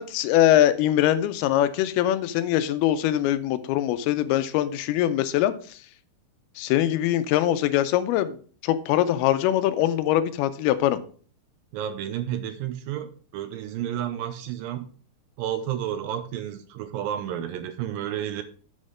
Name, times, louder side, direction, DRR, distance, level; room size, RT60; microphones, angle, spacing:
voice 1, 0.0-5.8 6.6-8.4 8.6-11.0, left 12 dB, 85° left, 12 dB, 2.6 m, -22 dB
voice 2, 11.7-14.9 15.4-18.4, right 10 dB, 80° right, 10 dB, 2.2 m, -31 dB
7.3 x 6.4 x 4.9 m, 0.43 s
omnidirectional pair, 4.4 m